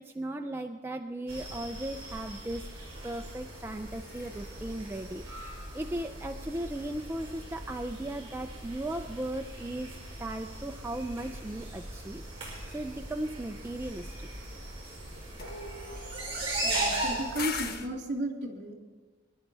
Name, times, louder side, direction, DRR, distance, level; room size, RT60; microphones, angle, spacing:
voice 1, 0.0-12.2 12.7-14.3, right 1 dB, 10° right, 4 dB, 0.3 m, -37 dB
sound 1, 1.3-17.7, right 1 dB, 30° right, 4.7 m, -39 dB
sound 2, 2.8-6.3 15.4-17.9, left 5 dB, 50° left, 0.9 m, -43 dB
voice 2, 16.6-18.7, right 1 dB, 55° right, 0 dB, 2.6 m, -34 dB
22.5 x 11.0 x 3.4 m, 1.3 s
head